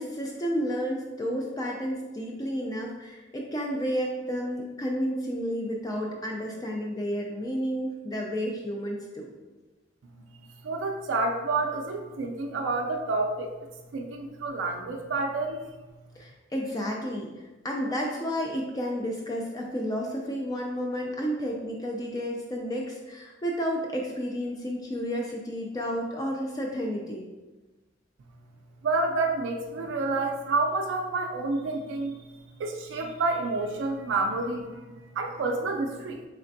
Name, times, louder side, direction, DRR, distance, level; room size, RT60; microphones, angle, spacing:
voice 1, 0.0-9.3 16.2-17.3 17.6-27.2, equal, 20° left, 0 dB, 0.3 m, -31 dB
voice 2, 10.6-13.5 13.9-15.7 28.8-32.2 32.6-36.2, right 3 dB, 80° right, 2 dB, 0.4 m, -29 dB
4.2 x 3.2 x 2.6 m, 1.2 s
head